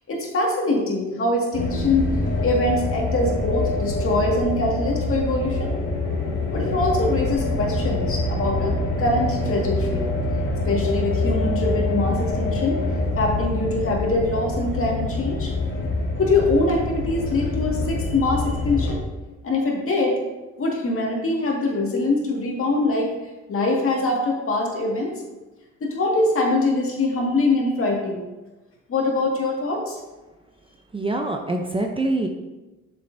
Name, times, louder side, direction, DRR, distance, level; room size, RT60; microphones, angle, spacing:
voice 1, 0.1-2.1 2.4-5.7 6.5-10.0 10.7-12.8 13.2-15.5 16.2-19.0 19.4-20.1 20.6-23.1 23.5-25.1 25.8-28.2 28.9-30.0, left 2 dB, 45° left, -1 dB, 2.0 m, -23 dB
sound 1, 1.5-19.0, left 2 dB, 75° left, 1.7 m, -25 dB
voice 2, 30.9-32.3, right 2 dB, 15° right, 3 dB, 0.6 m, -24 dB
7.6 x 6.7 x 2.7 m, 1.1 s
cardioid pair, 90°, 30 cm